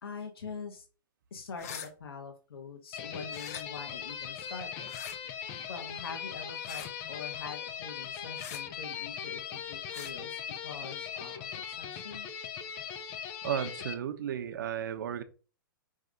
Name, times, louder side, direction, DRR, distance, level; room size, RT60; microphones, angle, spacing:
voice 1, 0.0-0.8 1.3-4.9 5.7-12.3, left 5 dB, 90° left, 3 dB, 1.6 m, -44 dB
sound 1, 1.5-1.9 3.3-3.6 4.9-5.2 6.6-6.9 8.4-8.6 9.9-10.1, left 8 dB, 40° left, 0.8 m, -43 dB
sound 2, 2.9-13.9, left 8 dB, 20° left, 0.5 m, -40 dB
voice 2, 13.4-15.2, right 9 dB, 60° right, 8 dB, 1.0 m, -34 dB
6.3 x 3.3 x 5.2 m, 0.35 s
hypercardioid pair, 170°, 12 cm